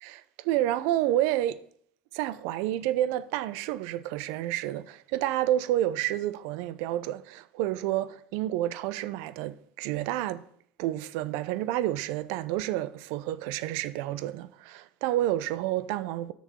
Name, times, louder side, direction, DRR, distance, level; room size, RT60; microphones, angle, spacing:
voice 1, 0.0-1.6 2.1-10.4 10.8-16.3, right 13 dB, 70° right, 0.6 m, -29 dB
9.3 x 6.6 x 5.2 m
hypercardioid pair, 75°, 5 cm